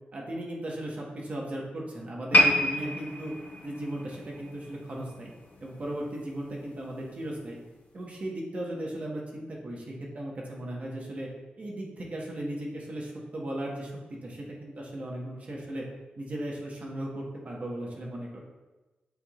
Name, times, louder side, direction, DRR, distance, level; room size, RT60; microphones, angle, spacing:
voice 1, 0.1-3.3 3.6-5.3 5.6-7.6 7.9-11.3 11.6-13.9 14.2-15.8 16.2-18.3, right 1 dB, 45° right, -2 dB, 1.4 m, -36 dB
sound 1, 2.3-5.6 5.9-6.2 6.9-7.0, left 1 dB, 60° left, 1.0 m, -27 dB
10.5 x 3.7 x 2.5 m, 1.1 s
wide cardioid pair, 130°, 3 cm